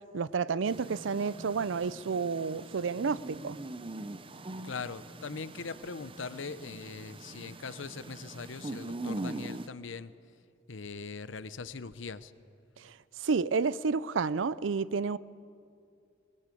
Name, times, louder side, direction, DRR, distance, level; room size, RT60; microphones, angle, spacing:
voice 1, 0.1-3.6 13.2-15.2, right 5 dB, 80° right, 0.5 m, -30 dB
sound 1, 0.7-9.7, right 2 dB, 25° right, 0.7 m, -42 dB
voice 2, 4.6-10.1 10.7-12.3, left 4 dB, 80° left, 0.8 m, -41 dB
21.5 x 19.5 x 8.5 m
head